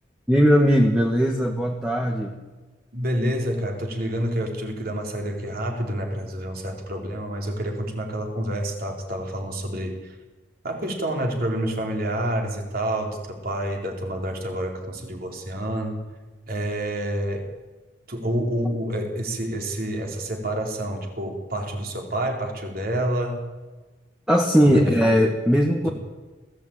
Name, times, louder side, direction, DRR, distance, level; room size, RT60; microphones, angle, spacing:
voice 1, 0.3-2.4 24.3-25.9, equal, 5° right, 2 dB, 1.5 m, -19 dB
voice 2, 2.9-10.2 10.6-16.0 16.5-17.5 18.1-23.5 24.7-25.2, right 1 dB, 50° right, 2 dB, 4.0 m, -28 dB
20.5 x 15.5 x 8.9 m, 1.3 s
head